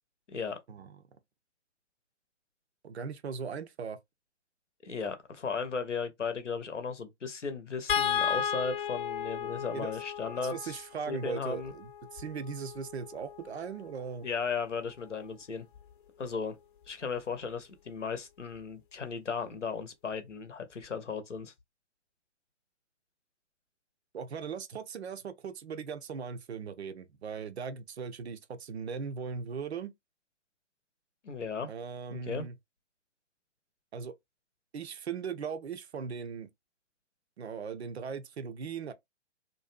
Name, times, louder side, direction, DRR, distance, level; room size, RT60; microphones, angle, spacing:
voice 1, 0.3-0.6 4.8-10.8 11.1-11.7 14.2-15.7 16.2-16.6 16.9-21.5 31.2-31.7 32.1-32.5, left 5 dB, 80° left, 0.8 m, -36 dB
voice 2, 2.8-4.0 9.7-9.9 10.3-14.3 24.1-29.9 31.7-32.6 33.9-34.1 34.7-36.5 37.4-38.9, right 6 dB, 65° right, 0.5 m, -39 dB
sound 1, 7.9-14.2 15.7-15.9 16.3-16.4, left 8 dB, 45° left, 0.7 m, -35 dB
2.6 x 2.2 x 2.5 m
figure-of-eight pair, 125°, 36 cm